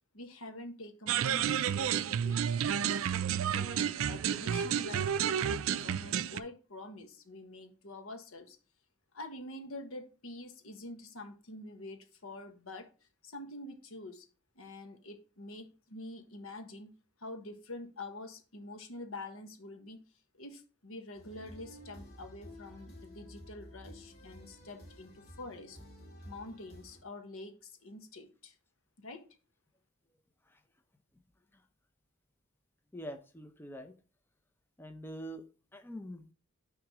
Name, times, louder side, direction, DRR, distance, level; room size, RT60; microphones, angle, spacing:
voice 1, 0.1-3.0 3.5-8.6 9.1-12.9 13.2-14.3 14.5-16.9 17.2-20.0 20.3-25.8 26.3-28.6 29.0-29.4, left 2 dB, 90° left, 6 dB, 1.3 m, -46 dB
sound 1, 1.1-6.4, right 8 dB, 75° right, 0.4 m, -31 dB
sound 2, 21.1-27.0, equal, 45° left, 2.1 m, -52 dB
voice 2, 32.9-34.0 34.8-36.3, equal, 10° left, 7 dB, 0.6 m, -45 dB
6.4 x 3.7 x 6.1 m, 0.36 s
head